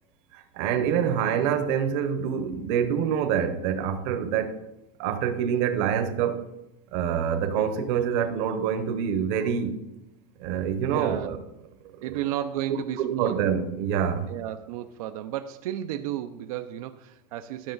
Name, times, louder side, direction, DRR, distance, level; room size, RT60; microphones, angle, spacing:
voice 1, 0.3-4.6 5.0-6.4 6.9-9.8 10.4-11.4 11.9-12.1 12.7-14.3, right 8 dB, 50° right, 0.9 m, -26 dB
voice 2, 10.8-11.3 12.0-13.4 14.3-17.7, right 12 dB, 80° right, 0.5 m, -33 dB
12.0 x 5.9 x 3.9 m
supercardioid pair, 170°, 18 cm